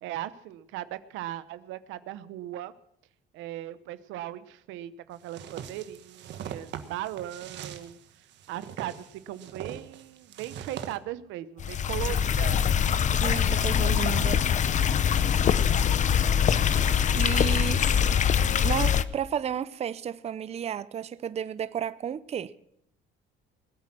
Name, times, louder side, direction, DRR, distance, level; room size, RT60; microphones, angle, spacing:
voice 1, 0.0-2.7 3.3-8.0 8.5-12.6, right 13 dB, 85° right, 0.9 m, -38 dB
sound 1, 5.3-11.0, right 9 dB, 65° right, 1.5 m, -42 dB
sound 2, 11.6-19.0, left 8 dB, 40° left, 0.7 m, -23 dB
voice 2, 13.2-14.4 17.1-17.9 18.6-22.5, right 8 dB, 35° right, 0.6 m, -32 dB
20.0 x 8.7 x 6.1 m
cardioid pair, 115°, 19 cm